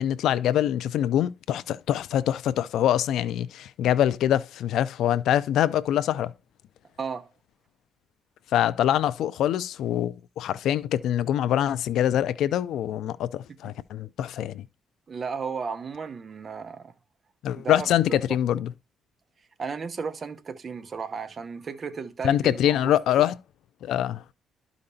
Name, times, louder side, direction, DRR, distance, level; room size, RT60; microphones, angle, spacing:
voice 1, 0.0-6.3 8.5-14.6 17.4-18.7 22.2-23.3 23.8-24.2, left 11 dB, 80° left, 0.4 m, -24 dB
voice 2, 7.0-7.3 15.1-16.9 17.5-18.2 19.6-22.9, right 5 dB, 40° right, 0.8 m, -34 dB
11.5 x 5.1 x 2.7 m
cardioid pair, 105°, 0 cm